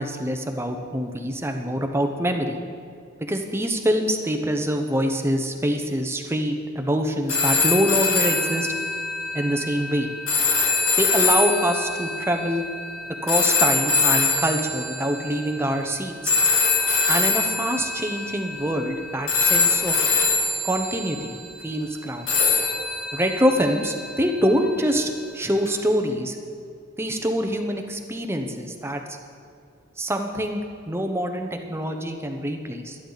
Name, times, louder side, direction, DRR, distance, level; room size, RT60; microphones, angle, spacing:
voice 1, 0.0-2.6 3.2-8.7 9.3-10.1 11.0-12.6 13.2-16.3 17.1-19.9 20.6-21.4 21.6-22.3 23.1-26.4 27.0-29.0 30.0-30.6 30.9-33.0, equal, 10° right, 4 dB, 0.9 m, -25 dB
sound 1, 7.3-15.5 16.3-19.0 19.3-21.4 22.3-24.5 25.7-25.8, left 4 dB, 90° left, 2.8 m, -23 dB
23.0 x 10.0 x 4.1 m, 2.4 s
head